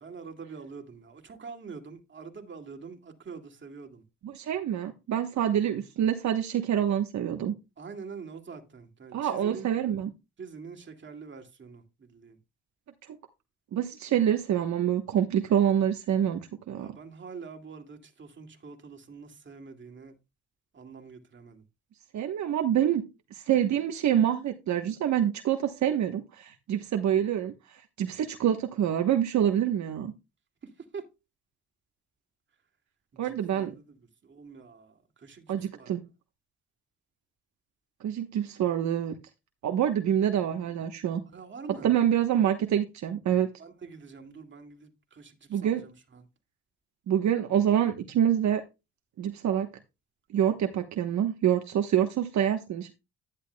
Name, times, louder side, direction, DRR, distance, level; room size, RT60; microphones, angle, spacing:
voice 1, 0.0-4.0 7.8-9.7 10.4-11.8 12.1-12.4 16.8-20.1 20.7-21.6 30.9-31.0 33.5-33.8 34.3-34.9 35.2-35.9 41.3-41.9 43.6-44.9 45.2-45.3 45.6-45.9, right 5 dB, 40° right, 2.3 m, -44 dB
voice 2, 4.2-7.5 9.1-10.1 13.1-13.2 13.7-16.9 22.1-23.0 23.3-30.1 33.2-33.7 35.5-36.0 38.0-39.1 39.6-41.2 41.7-43.5 45.5-45.9 47.1-48.6 49.2-49.7 50.3-52.9, right 10 dB, 65° right, 1.1 m, -26 dB
10.5 x 10.5 x 2.3 m
cardioid pair, 90°, 30 cm